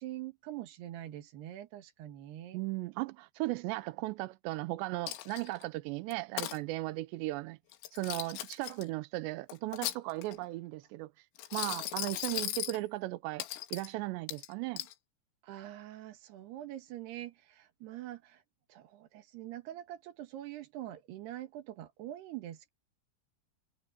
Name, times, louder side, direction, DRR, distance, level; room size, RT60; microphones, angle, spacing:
voice 1, 0.0-2.6 15.4-18.4 18.7-22.7, right 13 dB, 65° right, 3.4 m, -44 dB
voice 2, 2.5-7.6 7.9-11.3 11.5-13.4 13.7-14.9, right 19 dB, 80° right, 2.5 m, -36 dB
Coin (dropping), 5.1-5.6 6.1-6.6 7.7-8.8 9.5-10.4 11.4-12.8 13.4-13.9 14.3-14.9, left 13 dB, 75° left, 3.8 m, -38 dB
omnidirectional pair, 5.8 m